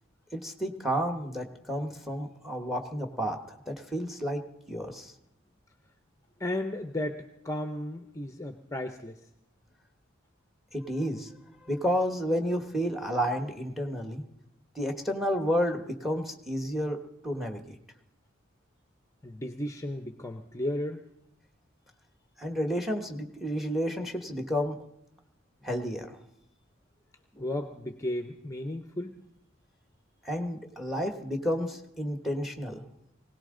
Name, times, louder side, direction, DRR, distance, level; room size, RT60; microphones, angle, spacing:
voice 1, 0.3-4.4 4.7-5.1 10.7-11.3 11.6-14.2 14.7-17.0 17.2-17.8 22.4-24.8 25.6-26.2 30.2-32.8, equal, ahead, 6 dB, 1.3 m, -31 dB
voice 2, 6.4-9.2 19.2-21.0 27.3-29.2, left 1 dB, 15° left, 6 dB, 0.7 m, -34 dB
20.0 x 17.5 x 3.8 m, 0.81 s
head